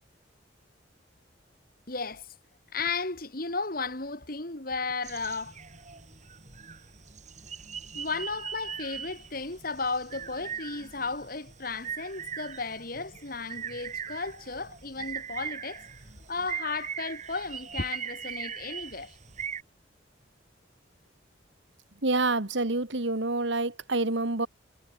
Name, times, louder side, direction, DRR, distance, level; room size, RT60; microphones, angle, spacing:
voice 1, 1.9-2.3 2.7-5.6 7.9-15.8 16.3-19.2, left 4 dB, 45° left, 2.7 m, -34 dB
sound 1, 5.0-19.6, right 8 dB, 35° right, 2.6 m, -40 dB
voice 2, 22.0-24.5, right 2 dB, 70° right, 2.0 m, -27 dB
head